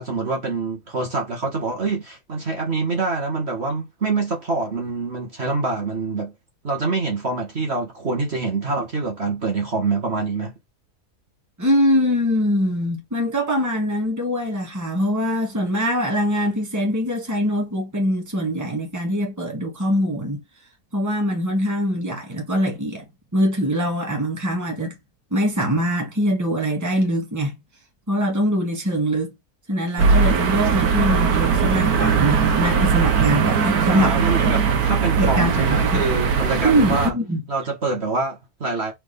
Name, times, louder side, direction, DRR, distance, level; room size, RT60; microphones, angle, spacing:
voice 1, 0.0-6.3 6.6-10.5 33.9-37.1 37.5-38.9, right 3 dB, 45° right, 1.8 m, -25 dB
voice 2, 11.6-20.4 20.9-23.1 23.3-25.0 25.3-27.5 28.1-29.3 29.7-34.5 35.2-36.0 36.6-37.4, equal, 10° right, 1.7 m, -23 dB
sound 1, 30.0-37.1, right 6 dB, 75° right, 1.5 m, -20 dB
4.4 x 4.1 x 5.2 m
omnidirectional pair, 1.6 m